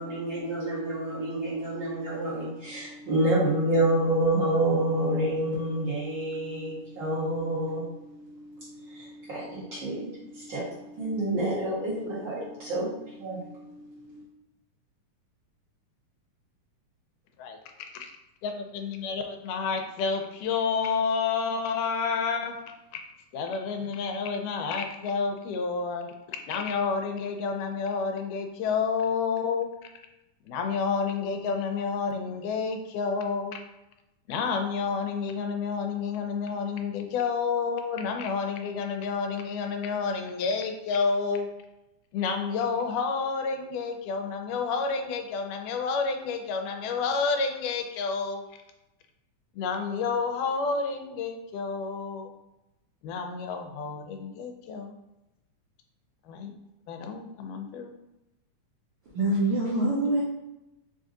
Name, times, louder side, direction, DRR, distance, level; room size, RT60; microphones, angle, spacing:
voice 1, 0.0-13.8 14.1-14.2, right 1 dB, 45° right, -8 dB, 1.7 m, -29 dB
voice 2, 17.4-18.1 18.4-22.6 23.3-29.7 30.4-33.6 34.3-41.5 42.1-48.4 49.5-52.3 53.0-55.0 56.3-56.5 56.9-57.9, left 5 dB, 90° left, 4 dB, 2.1 m, -30 dB
voice 3, 59.1-60.2, right 2 dB, 85° right, -4 dB, 1.2 m, -24 dB
5.2 x 2.6 x 3.8 m, 0.93 s
omnidirectional pair, 3.6 m